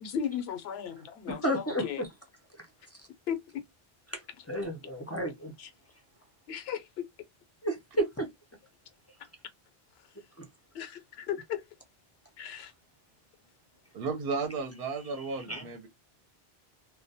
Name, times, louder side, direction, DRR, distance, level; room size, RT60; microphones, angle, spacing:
voice 1, 0.0-2.0 3.3-3.6 5.6-5.7 6.5-6.9 10.7-11.6 12.4-12.7, left 8 dB, 80° left, 0.8 m, -36 dB
voice 2, 1.3-2.1 4.1-4.2 4.5-5.5 7.6-8.3 10.4-10.5 15.1-15.7, right 1 dB, 25° left, 0.3 m, -32 dB
voice 3, 13.9-15.9, right 4 dB, 70° right, 0.7 m, -34 dB
2.2 x 2.1 x 2.6 m
omnidirectional pair, 1.0 m